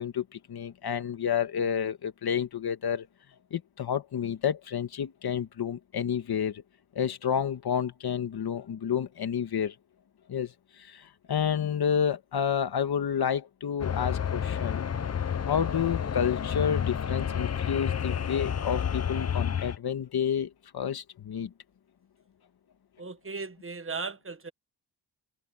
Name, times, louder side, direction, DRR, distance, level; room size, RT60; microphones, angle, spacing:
voice 1, 0.0-3.1 3.5-6.6 6.9-9.7 10.3-14.9 15.5-21.5, left 8 dB, 65° left, 1.6 m, -30 dB
sound 1, 13.8-19.8, left 8 dB, 40° left, 0.9 m, -30 dB
voice 2, 23.0-24.5, right 4 dB, 30° right, 1.3 m, -37 dB
wide cardioid pair, 130°, 42 cm